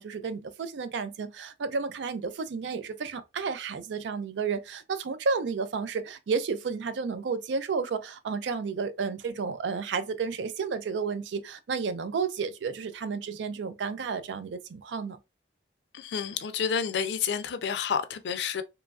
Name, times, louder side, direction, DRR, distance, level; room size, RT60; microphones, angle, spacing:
voice 1, 0.0-15.2, right 5 dB, 80° right, 0.4 m, -32 dB
voice 2, 15.9-18.6, left 7 dB, 70° left, 0.4 m, -29 dB
3.0 x 2.3 x 2.2 m
head